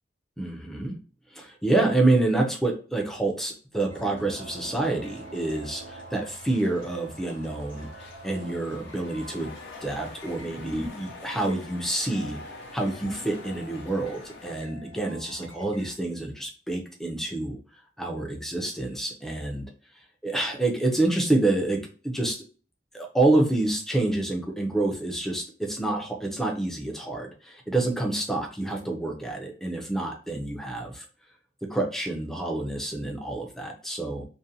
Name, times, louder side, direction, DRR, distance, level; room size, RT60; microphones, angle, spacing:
voice 1, 0.4-1.0 1.3-9.5 9.8-12.4 12.7-17.6 18.0-19.7 20.2-22.4 22.9-31.1 31.6-34.3, right 2 dB, ahead, 1 dB, 0.4 m, -27 dB
sound 1, 3.7-10.9, right 3 dB, 85° right, 0.7 m, -46 dB
sound 2, 3.9-15.9, left 1 dB, 90° left, 0.9 m, -50 dB
sound 3, 4.1-14.6, left 3 dB, 55° left, 0.5 m, -47 dB
2.5 x 2.1 x 2.7 m, 0.38 s
head